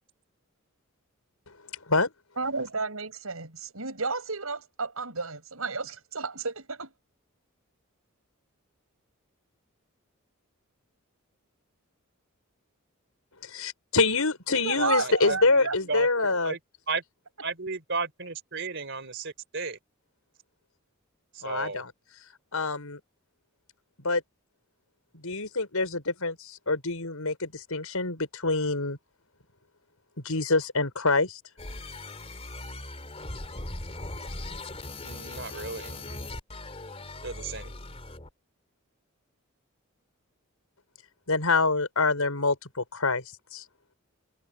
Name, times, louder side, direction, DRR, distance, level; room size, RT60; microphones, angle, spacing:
voice 1, 2.4-6.9 14.5-16.4, right 4 dB, 80° right, 6.4 m, -33 dB
voice 2, 13.4-16.5 21.4-21.9 22.5-23.0 24.0-24.2 25.1-29.0 30.2-31.4 41.3-43.2 43.5-43.6, left 3 dB, 85° left, 5.7 m, -26 dB
voice 3, 14.8-16.1 16.4-16.6 16.9-17.0 17.4-19.8 21.3-21.8 35.0-36.3 37.2-37.7, right 4 dB, 55° right, 4.0 m, -34 dB
sound 1, 31.6-38.3, left 2 dB, 30° left, 3.4 m, -39 dB
head